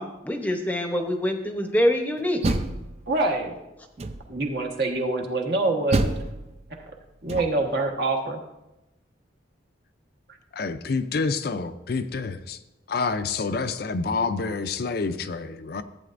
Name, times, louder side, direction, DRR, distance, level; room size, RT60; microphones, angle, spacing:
voice 1, 0.0-2.6, equal, 10° left, 0.8 m, -25 dB
Door, 2.2-3.4 4.0-4.6 5.9-7.8, right 2 dB, 35° right, 0.5 m, -29 dB
voice 2, 3.1-3.6 4.3-6.1 7.2-8.4, right 2 dB, 55° right, 1.3 m, -25 dB
voice 3, 10.5-12.6 12.9-15.8, left 4 dB, 55° left, 0.5 m, -28 dB
14.5 x 8.5 x 2.6 m
head